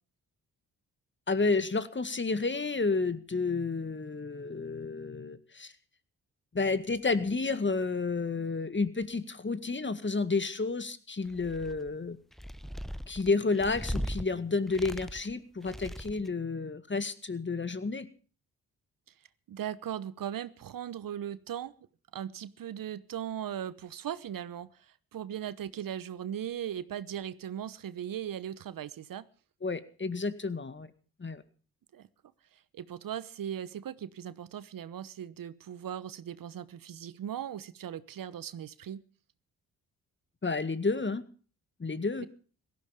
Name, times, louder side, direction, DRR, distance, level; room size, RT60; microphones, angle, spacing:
voice 1, 1.3-5.7 6.5-12.2 13.1-18.1 29.6-30.9 31.2-31.4 40.4-41.2 41.8-42.3, left 4 dB, 30° left, 12 dB, 2.0 m, -31 dB
sound 1, 11.3-11.9 12.3-14.2 14.7-15.3 15.6-16.3, equal, ahead, 0.9 m, -38 dB
voice 2, 19.5-21.7 22.1-24.7 25.1-29.2 31.9-32.1 32.7-39.0 42.2-42.3, right 10 dB, 60° right, 16 dB, 1.0 m, -38 dB
17.5 x 14.5 x 5.2 m, 0.41 s
hypercardioid pair, 45°, 38 cm